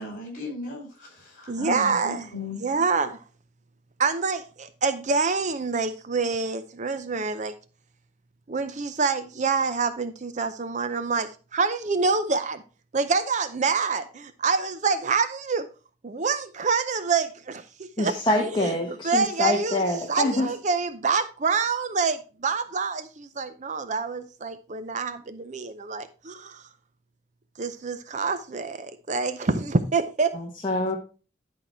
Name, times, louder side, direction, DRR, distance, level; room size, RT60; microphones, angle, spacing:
voice 1, 0.0-2.6, left 2 dB, 45° left, 4.9 m, -36 dB
voice 2, 1.5-2.3 2.6-3.2 4.0-7.5 8.5-12.6 12.9-15.7 16.0-18.2 18.5-18.7 19.0-26.6 27.6-30.3, right 4 dB, 40° right, 0.6 m, -26 dB
voice 3, 18.0-20.5 30.3-31.0, left 2 dB, 25° left, 1.2 m, -25 dB
11.0 x 4.7 x 4.5 m
head